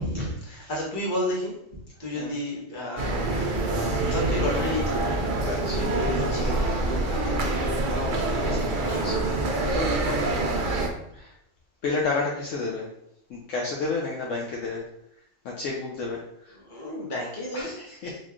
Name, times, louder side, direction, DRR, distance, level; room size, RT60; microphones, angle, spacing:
voice 1, 0.0-1.6 2.0-3.6 4.0-5.1 5.4-9.3 9.7-10.5 16.5-17.7, left 1 dB, 40° left, -5 dB, 1.2 m, -32 dB
sound 1, 3.0-10.9, right 2 dB, 60° right, 0.5 m, -26 dB
voice 2, 5.4-5.9 6.3-6.6 8.8-9.2 9.6-9.8 11.1-11.3 11.8-12.9 13.3-14.8 15.4-16.6 17.5-18.2, left 3 dB, 70° left, -2 dB, 0.9 m, -31 dB
4.2 x 3.0 x 2.4 m, 0.77 s
omnidirectional pair, 1.4 m